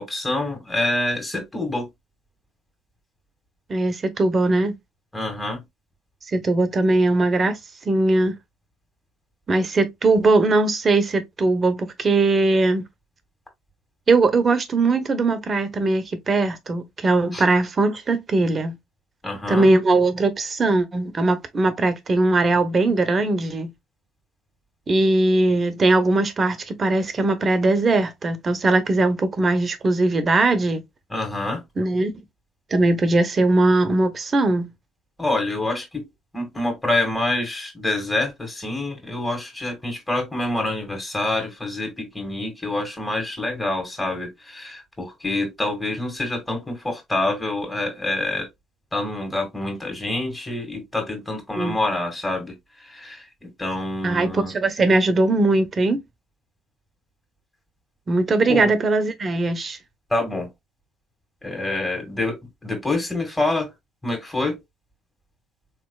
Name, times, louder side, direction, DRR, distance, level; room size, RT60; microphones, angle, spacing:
voice 1, 0.0-1.9 5.1-5.6 17.3-17.4 19.2-19.7 31.1-31.6 35.2-36.1 36.3-48.5 48.9-52.5 52.9-54.5 58.5-58.7 60.1-60.5 61.4-63.7 64.0-64.6, left 2 dB, 15° left, 2.0 m, -26 dB
voice 2, 3.7-4.7 6.3-7.6 7.8-8.3 9.5-12.8 14.1-18.8 19.5-23.7 24.9-30.8 31.8-32.1 32.7-34.7 51.6-51.8 54.0-56.0 58.1-59.8, right 2 dB, 35° right, 0.9 m, -20 dB
3.8 x 3.1 x 2.3 m
hypercardioid pair, 60°, 0 cm